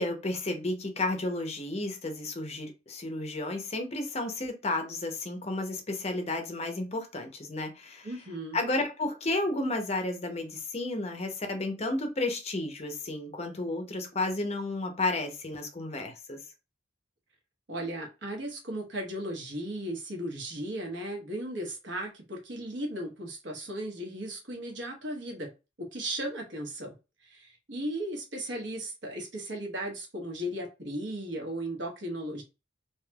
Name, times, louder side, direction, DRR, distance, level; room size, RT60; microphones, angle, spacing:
voice 1, 0.0-8.1 8.5-16.4, left 2 dB, 35° left, 0.6 m, -32 dB
voice 2, 8.0-8.6 17.7-25.5 25.8-26.9 27.2-32.4, right 1 dB, 65° right, 1.1 m, -36 dB
3.3 x 2.8 x 2.2 m
head